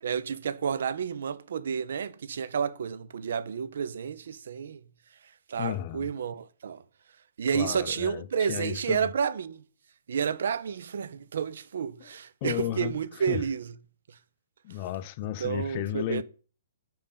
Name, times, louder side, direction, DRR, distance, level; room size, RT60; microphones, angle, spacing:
voice 1, 0.0-4.8 5.5-6.8 7.4-9.6 10.1-13.7 15.4-16.2, right 7 dB, 55° right, 0.4 m, -30 dB
voice 2, 5.6-6.1 7.5-9.1 12.0-12.1 12.4-13.5 14.6-16.2, left 13 dB, 35° left, 0.4 m, -34 dB
5.4 x 5.1 x 5.1 m
figure-of-eight pair, 120°, 0 cm